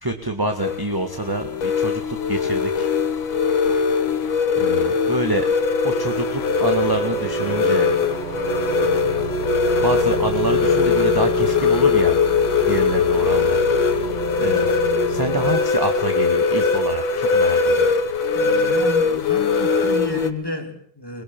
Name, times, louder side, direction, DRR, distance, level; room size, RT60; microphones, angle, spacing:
voice 1, 0.0-2.9 4.6-5.5 5.8-7.9 9.8-12.2 12.7-13.6 14.4-14.8 15.1-17.9, right 1 dB, 10° right, 5 dB, 1.8 m, -26 dB
sound 1, 0.6-20.3, left 5 dB, 75° left, 2.3 m, -20 dB
sound 2, 5.7-15.5, right 2 dB, 65° right, 5.3 m, -32 dB
voice 2, 18.3-21.2, left 1 dB, 10° left, 4 dB, 3.4 m, -32 dB
23.0 x 22.5 x 7.2 m, 0.62 s
omnidirectional pair, 2.2 m